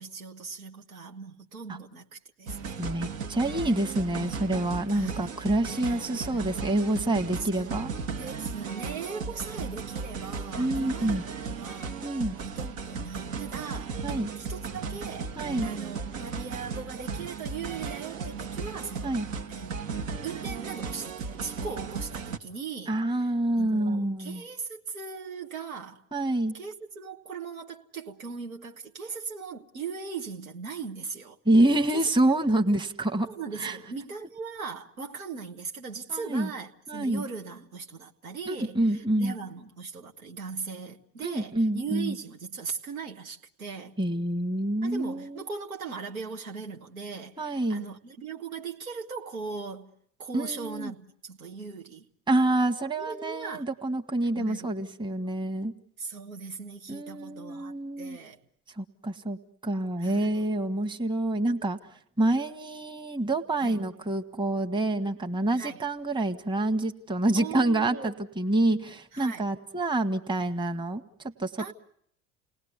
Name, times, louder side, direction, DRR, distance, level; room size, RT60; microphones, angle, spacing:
voice 1, 0.0-2.8 4.9-5.2 5.5-6.5 7.4-7.7 8.1-12.0 12.4-19.2 19.5-19.7 20.2-23.2 23.6-26.0 26.5-31.4 31.9-32.0 33.2-44.0 44.8-49.9 50.2-52.1 53.0-53.7 54.3-54.7 56.0-58.4 60.0-60.5 63.6-63.8 65.5-65.8 67.3-68.1 69.1-69.4 71.6-71.7, right 5 dB, 90° right, 1.4 m, -39 dB
sound 1, 2.5-22.4, right 5 dB, 70° right, 1.6 m, -36 dB
voice 2, 2.8-7.9 10.6-11.2 12.0-12.4 14.0-14.3 15.4-15.7 19.0-19.3 22.9-24.4 26.1-26.5 31.4-33.3 33.6-33.8 36.1-36.5 36.9-37.2 38.5-39.3 41.2-42.1 44.0-45.4 47.4-47.8 50.3-50.9 52.3-55.7 56.9-58.2 58.8-59.4 59.6-61.8 62.2-71.7, right 1 dB, 10° right, 1.3 m, -27 dB
29.0 x 19.0 x 8.0 m
hypercardioid pair, 70°, 41 cm